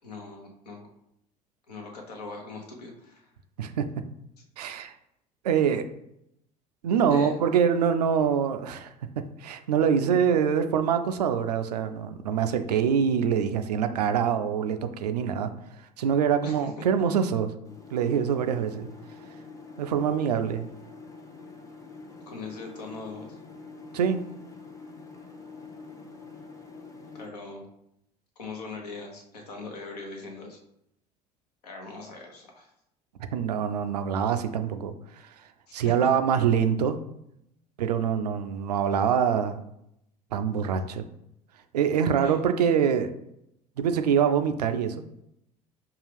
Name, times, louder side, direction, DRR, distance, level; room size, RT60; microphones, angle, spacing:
voice 1, 0.0-0.9 1.7-3.3 7.1-7.3 16.4-16.7 22.3-23.4 27.1-27.6 28.4-30.6 31.6-32.7 35.7-35.9 42.2-42.4, left 3 dB, 75° left, 1 dB, 0.9 m, -40 dB
voice 2, 4.6-4.9 5.4-5.8 6.8-8.9 9.4-15.5 16.0-17.5 17.9-18.9 19.8-20.7 23.9-24.2 33.3-35.3 35.7-37.0 37.8-39.6 40.3-41.1 41.7-43.1 43.8-45.0, right 7 dB, 75° right, 9 dB, 0.4 m, -25 dB
sound 1, 17.6-27.3, left 4 dB, 15° left, 0.6 m, -46 dB
5.5 x 2.3 x 3.3 m, 0.78 s
figure-of-eight pair, 65°, 21 cm